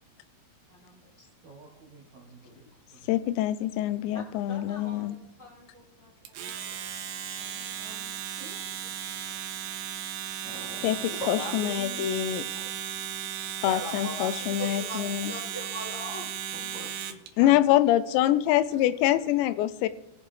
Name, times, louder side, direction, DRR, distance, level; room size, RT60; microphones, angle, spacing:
voice 1, 0.7-1.3 4.1-4.2 4.5-6.8 7.4-8.4, left 2 dB, 10° right, -4 dB, 1.6 m, -51 dB
voice 2, 1.4-3.1 8.4-8.6 16.5-17.6, right 2 dB, 60° right, -1 dB, 1.9 m, -49 dB
voice 3, 3.1-5.2 10.8-12.5 13.6-15.3 17.4-19.9, left 13 dB, 85° left, 13 dB, 2.9 m, -25 dB
Domestic sounds home sounds, 6.3-17.3, right 9 dB, 85° right, 3.1 m, -36 dB
voice 4, 10.4-12.7 13.6-16.3, equal, 35° left, -5 dB, 2.2 m, -39 dB
21.0 x 7.2 x 3.3 m, 0.84 s
omnidirectional pair, 5.1 m